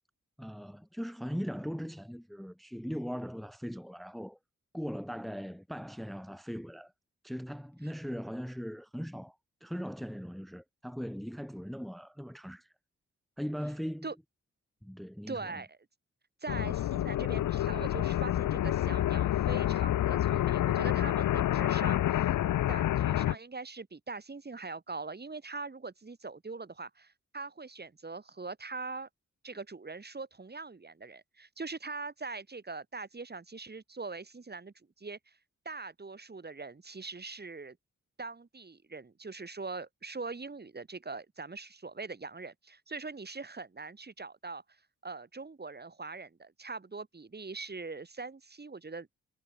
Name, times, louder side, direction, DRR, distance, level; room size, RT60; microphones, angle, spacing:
voice 1, 0.4-4.4 4.7-6.9 7.2-12.7 13.4-14.1 14.8-15.6, equal, ahead, 1.7 m, -39 dB
voice 2, 15.3-15.8 16.4-22.4 22.7-29.1 29.4-35.4 35.6-37.8 38.2-44.6 45.0-49.2, right 4 dB, 35° right, 3.2 m, -42 dB
sound 1, 16.5-23.4, left 13 dB, 85° left, 0.6 m, -28 dB
cardioid pair, 80°, 30 cm